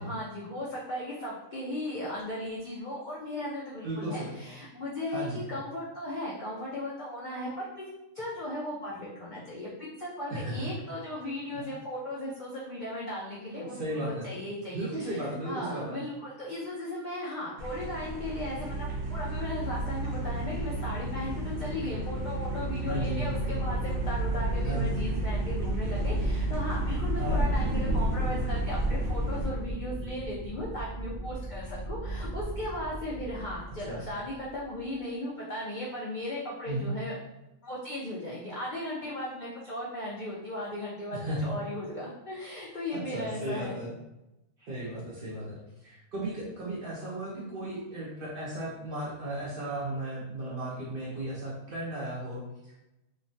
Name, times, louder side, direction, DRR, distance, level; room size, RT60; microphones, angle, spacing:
voice 1, 0.0-7.7 8.1-9.7 10.0-37.1 37.6-43.8, left 1 dB, 75° left, -6 dB, 0.4 m, -37 dB
voice 2, 3.8-4.4 5.1-5.5 10.3-10.8 11.5-11.7 13.5-14.3 14.7-16.0 22.8-23.3 24.6-25.0 27.2-27.5 33.8-34.0 36.7-36.9 41.1-41.6 42.9-43.9 44.6-52.8, right 1 dB, 55° right, -5 dB, 0.6 m, -35 dB
sound 1, 17.6-29.5, equal, 85° right, 1.1 m, -34 dB
sound 2, 18.3-34.6, right 2 dB, 35° left, 0.9 m, -33 dB
3.1 x 2.1 x 2.6 m, 0.95 s
omnidirectional pair, 1.5 m